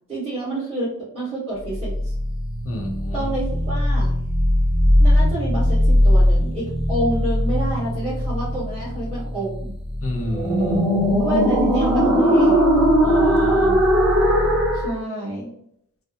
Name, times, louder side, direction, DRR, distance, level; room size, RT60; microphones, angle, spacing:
voice 1, 0.1-2.1 3.1-4.1 5.0-9.7 11.2-12.6 14.7-15.5, right 1 dB, 20° right, -13 dB, 1.4 m, -28 dB
sound 1, 1.7-14.9, equal, ahead, 0.7 m, -19 dB
voice 2, 2.6-3.3 10.0-11.0 13.0-13.8, left 1 dB, 45° left, 1 dB, 0.7 m, -30 dB
3.4 x 2.0 x 2.7 m, 0.72 s
wide cardioid pair, 135°, 33 cm